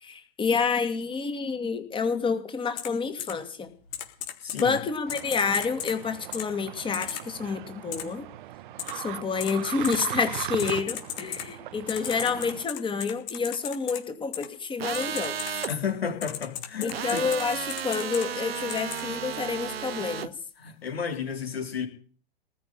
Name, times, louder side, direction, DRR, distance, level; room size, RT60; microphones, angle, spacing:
voice 1, 0.0-3.7 4.6-8.3 8.9-15.6 16.8-20.3, left 5 dB, 15° left, 9 dB, 2.4 m, -29 dB
Typing, 2.8-2.9 3.2-3.3 3.9-4.6 5.1-5.9 6.3-6.4 6.9-7.2 7.9-8.0 8.8-8.9 9.4-9.5 9.8-9.9 10.6-11.4 11.9-14.0 14.3-14.5 14.9-15.7 16.2-17.4 17.7-18.2 18.7-19.0, left 10 dB, 45° left, 3.4 m, -35 dB
voice 2, 4.4-4.8 15.7-17.2 20.6-21.9, left 7 dB, 75° left, 5 dB, 3.9 m, -32 dB
sound 1, 5.1-12.7, right 14 dB, 50° right, 0.9 m, -38 dB
sound 2, 14.8-15.7 16.9-20.3, right 8 dB, 70° right, 1.1 m, -33 dB
19.0 x 6.5 x 10.0 m, 0.43 s
figure-of-eight pair, 105°, 31 cm